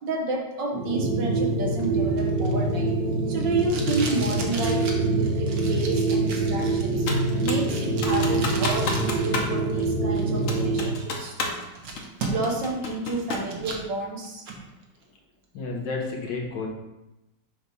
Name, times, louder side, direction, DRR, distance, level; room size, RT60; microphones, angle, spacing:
voice 1, 0.0-2.9 3.3-7.1 7.4-11.6 12.2-14.4, right 2 dB, 80° right, -1 dB, 1.9 m, -31 dB
sound 1, 0.7-11.0, right 3 dB, 45° right, 1.5 m, -25 dB
Packing tape duct tape, 1.8-9.3 9.6-10.6 11.1-11.2 11.5-12.7 13.0-13.8 14.2-14.6, right 3 dB, 60° right, 1.4 m, -36 dB
Computer keyboard, 7.1-7.7 8.0-9.5 9.8-9.9 10.5-11.7 12.0-13.5, left 3 dB, 55° left, 1.2 m, -31 dB
voice 2, 15.5-16.7, left 3 dB, 85° left, -2 dB, 1.9 m, -31 dB
7.1 x 3.2 x 5.4 m, 0.95 s
omnidirectional pair, 1.9 m